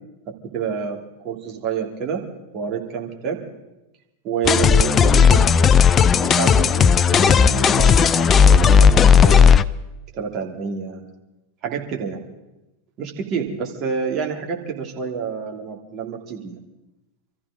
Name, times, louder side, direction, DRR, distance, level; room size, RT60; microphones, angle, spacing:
voice 1, 0.3-2.2 2.5-3.4 4.2-5.5 5.7-9.5 10.1-11.0 11.6-12.3 13.0-16.6, right 6 dB, 35° right, 1 dB, 2.6 m, -28 dB
sound 1, 4.4-9.6, left 6 dB, 25° left, 0.4 m, -14 dB
26.5 x 14.0 x 3.8 m, 0.99 s
figure-of-eight pair, 90°, 0 cm